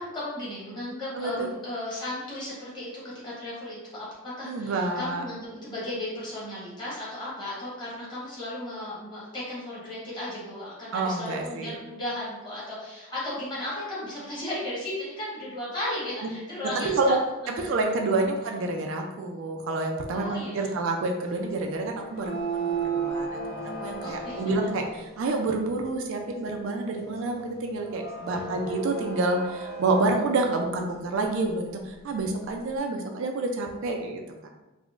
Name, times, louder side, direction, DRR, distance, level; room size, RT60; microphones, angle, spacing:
voice 1, 0.0-17.2 17.6-17.7 20.1-20.7 24.0-24.4 28.3-28.5, left 1 dB, 20° left, -8 dB, 1.0 m, -35 dB
voice 2, 1.1-1.5 4.4-5.2 10.9-11.8 16.7-17.2 17.5-34.5, right 2 dB, 60° right, 2 dB, 0.3 m, -28 dB
sound 1, 22.0-25.1 26.6-30.5, right 4 dB, 45° left, 1.2 m, -34 dB
3.6 x 2.1 x 2.4 m, 1.0 s
head